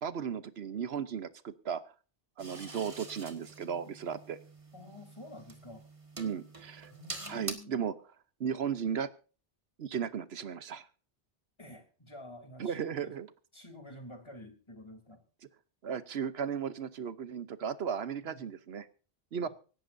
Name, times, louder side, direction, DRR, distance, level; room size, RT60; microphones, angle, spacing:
voice 1, 0.0-1.8 2.4-4.4 6.2-6.9 7.3-7.9 8.4-9.1 9.8-10.9 12.6-13.3 15.8-18.9 19.3-19.5, right 7 dB, 85° right, 13 dB, 1.1 m, -35 dB
sound 1, 2.4-7.5, right 2 dB, 30° right, 1.6 m, -46 dB
voice 2, 4.7-5.8 6.9-7.9 11.6-13.2 13.5-15.2 18.2-18.5 19.4-19.5, left 1 dB, 25° left, 5 dB, 3.2 m, -49 dB
25.0 x 11.5 x 2.6 m, 0.37 s
omnidirectional pair, 1.0 m